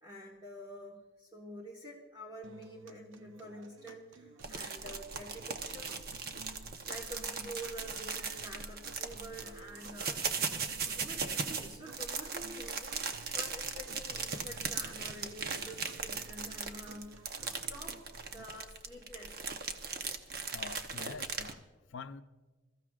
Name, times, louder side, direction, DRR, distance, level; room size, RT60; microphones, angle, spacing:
voice 1, 0.0-6.0 6.9-10.4 10.9-19.4, equal, 25° right, -3 dB, 1.4 m, -48 dB
sound 1, 2.4-18.4, right 4 dB, 85° right, 0.8 m, -55 dB
sound 2, 4.4-21.5, right 5 dB, 50° right, 0.9 m, -38 dB
voice 2, 20.5-22.2, left 5 dB, 80° left, 9 dB, 0.6 m, -46 dB
27.0 x 14.5 x 2.4 m, 1.3 s
head